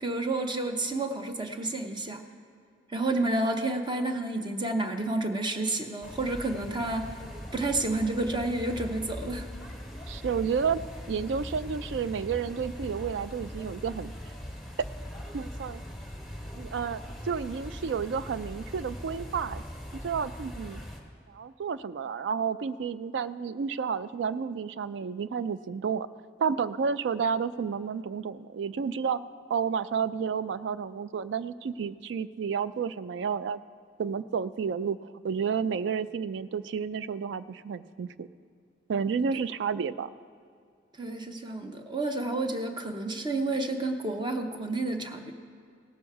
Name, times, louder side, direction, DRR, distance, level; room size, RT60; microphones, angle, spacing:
voice 1, 0.0-2.2 2.9-7.1 7.5-9.5 41.0-45.3, right 2 dB, 25° right, 5 dB, 0.7 m, -30 dB
sound 1, 6.0-21.0, equal, ahead, 1.3 m, -41 dB
voice 2, 10.1-10.8 11.1-14.1 15.3-15.8 16.5-19.6 20.0-20.8 21.3-26.1 26.4-29.2 29.5-33.6 34.0-38.3 38.9-40.1, right 6 dB, 70° right, 15 dB, 0.3 m, -31 dB
17.0 x 7.0 x 4.7 m, 2.2 s
head